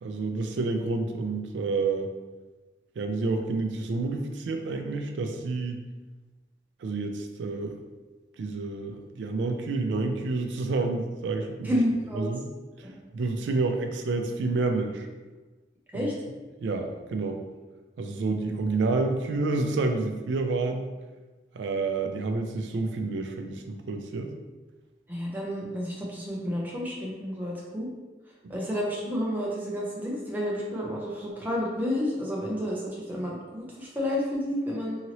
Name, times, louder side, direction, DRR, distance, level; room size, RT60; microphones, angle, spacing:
voice 1, 0.0-2.1 3.0-5.8 6.8-7.8 8.4-11.8 12.1-12.5 12.8-12.9 13.1-15.1 15.9-16.1 16.6-17.4 18.0-20.9 21.5-24.3 28.4-28.5, right 3 dB, 85° right, 5 dB, 0.3 m, -29 dB
voice 2, 11.6-12.3 12.8-13.0 15.9-16.1 25.1-27.9 28.5-35.0, equal, 10° right, -4 dB, 0.5 m, -30 dB
2.8 x 2.7 x 2.9 m, 1.2 s
head